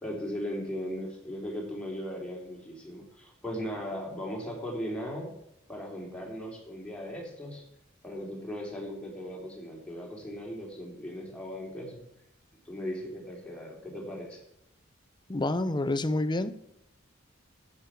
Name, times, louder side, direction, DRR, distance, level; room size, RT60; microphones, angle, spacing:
voice 1, 0.0-5.3 5.7-7.7 8.0-12.0 12.7-14.4, equal, 5° left, -2 dB, 3.5 m, -38 dB
voice 2, 15.3-16.8, left 2 dB, 25° left, 12 dB, 0.7 m, -29 dB
11.5 x 8.6 x 6.1 m, 0.80 s
head